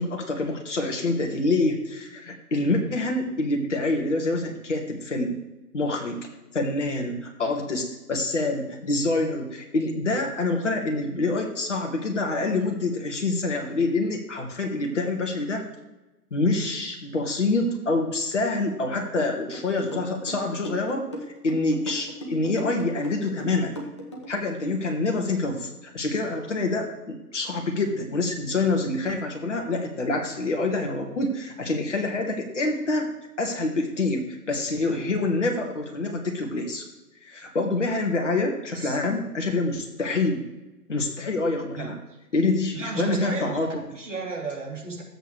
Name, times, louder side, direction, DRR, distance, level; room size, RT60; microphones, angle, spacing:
voice 1, 0.0-5.4 5.7-6.2 6.5-15.7 16.3-21.1 21.4-23.8 24.3-25.7 25.9-33.1 33.4-36.9 37.2-40.5 40.9-42.0 42.3-43.7, left 2 dB, 50° left, 1 dB, 1.9 m, -26 dB
sound 1, 19.2-24.4, equal, 20° left, 0.7 m, -37 dB
voice 2, 42.7-43.6 43.9-45.0, right 3 dB, 50° right, -3 dB, 3.0 m, -33 dB
13.0 x 8.1 x 3.3 m, 1.0 s
figure-of-eight pair, 145°, 48 cm